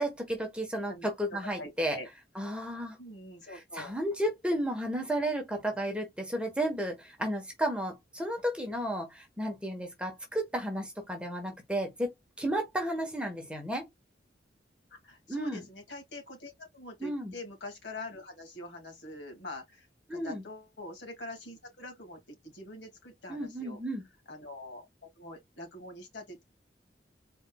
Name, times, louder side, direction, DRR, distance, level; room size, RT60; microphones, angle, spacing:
voice 1, 0.0-2.0 2.3-3.0 3.5-12.1 12.4-13.8 15.3-15.7 17.0-17.3 20.1-20.4 23.3-24.0, right 1 dB, 5° right, 1.3 m, -33 dB
voice 2, 1.6-2.1 3.0-3.9 14.9-23.8 24.3-24.9 25.2-26.4, left 2 dB, 90° left, 2.4 m, -44 dB
4.9 x 4.2 x 2.3 m
head